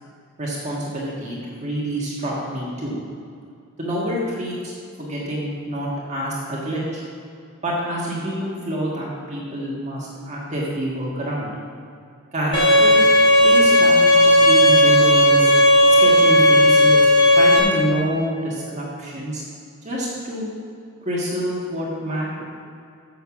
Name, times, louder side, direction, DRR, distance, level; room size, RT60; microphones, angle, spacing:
voice 1, 0.4-3.0 3.8-4.7 5.0-7.0 7.6-11.5 12.3-13.1 13.4-15.5 16.0-17.0 17.3-19.4 19.8-20.5 21.0-22.3, equal, 35° right, -5 dB, 1.6 m, -27 dB
Bowed string instrument, 12.5-17.6, equal, 20° left, 1.6 m, -14 dB
6.9 x 6.6 x 7.1 m, 2.4 s
head